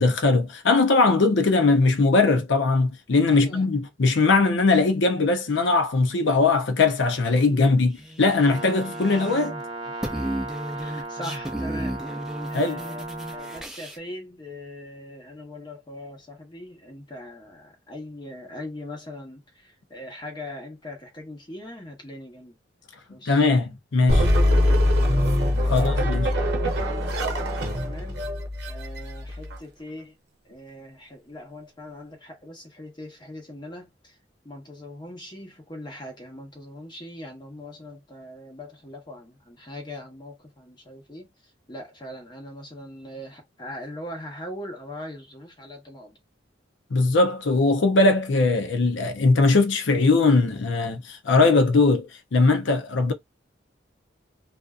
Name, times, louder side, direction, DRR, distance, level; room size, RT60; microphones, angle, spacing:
voice 1, 0.0-9.5 12.5-12.8 23.3-24.3 25.7-26.3 46.9-53.1, left 3 dB, 70° left, 0.6 m, -20 dB
voice 2, 3.3-3.6 7.5-7.7 10.7-12.2 12.5-13.0 13.3-22.5 23.1-23.5 25.0-28.3 28.7-30.1 30.4-34.2 34.4-41.3 41.7-46.2, left 1 dB, 25° left, 0.9 m, -41 dB
sound 1, 7.9-9.6 9.9-14.0, right 1 dB, 5° right, 0.4 m, -34 dB
Brass instrument, 8.4-13.7, right 3 dB, 25° right, 0.7 m, -36 dB
sound 2, 24.1-29.6, left 1 dB, 55° right, 0.7 m, -23 dB
2.5 x 2.2 x 2.4 m
head